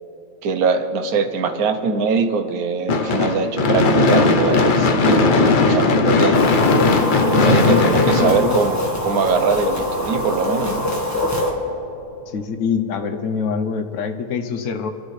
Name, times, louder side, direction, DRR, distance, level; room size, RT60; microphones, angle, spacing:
voice 1, 0.4-6.4 7.2-10.9, right 5 dB, 80° right, 8 dB, 1.4 m, -22 dB
Gunshot gunfire / Fireworks, 2.9-9.1, left 3 dB, 45° left, 0.8 m, -17 dB
sound 1, 6.3-11.5, left 1 dB, 10° left, 1.5 m, -24 dB
voice 2, 7.6-8.6 12.3-14.9, left 6 dB, 60° left, 7 dB, 1.2 m, -24 dB
27.0 x 12.5 x 3.3 m, 2.9 s
omnidirectional pair, 1.6 m